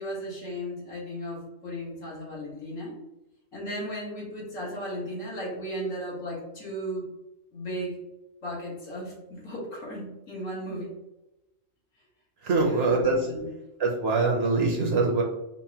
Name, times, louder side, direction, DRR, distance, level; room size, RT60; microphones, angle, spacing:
voice 1, 0.0-3.0 3.5-7.1 7.5-8.0 8.4-10.9 12.6-13.5, equal, 75° left, -6 dB, 2.0 m, -35 dB
voice 2, 12.4-13.3 13.8-15.2, right 3 dB, 60° right, 0 dB, 0.8 m, -23 dB
5.3 x 2.2 x 2.8 m, 0.96 s
omnidirectional pair, 1.4 m